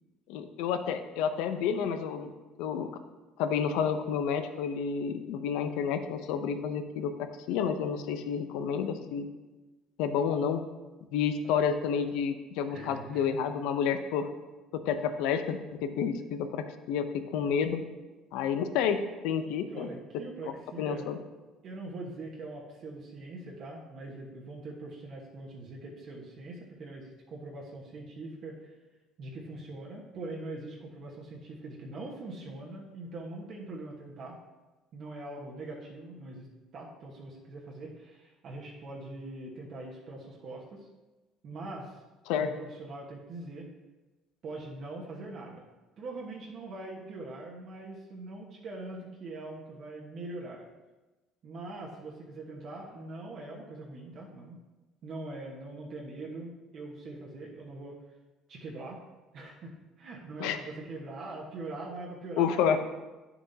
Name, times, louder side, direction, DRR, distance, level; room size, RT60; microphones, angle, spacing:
voice 1, 0.3-2.3 2.6-2.9 3.4-9.3 10.0-10.6 11.1-14.3 14.7-17.0 17.3-17.8 18.3-19.0 19.2-19.9 20.8-21.2 42.3-42.5 60.4-60.6 62.4-62.8, left 7 dB, 85° left, 8 dB, 0.6 m, -30 dB
voice 2, 12.7-13.3 19.7-21.1 21.6-28.8 29.2-34.4 34.9-36.5 36.7-40.9 41.4-42.0 42.3-43.7 44.4-45.6 46.0-50.7 51.4-54.6 55.0-57.9 58.5-59.0 59.3-59.7 60.0-62.8, right 2 dB, 50° right, -2 dB, 1.3 m, -42 dB
9.6 x 7.0 x 2.8 m, 1.2 s
cardioid pair, 115°, 0 cm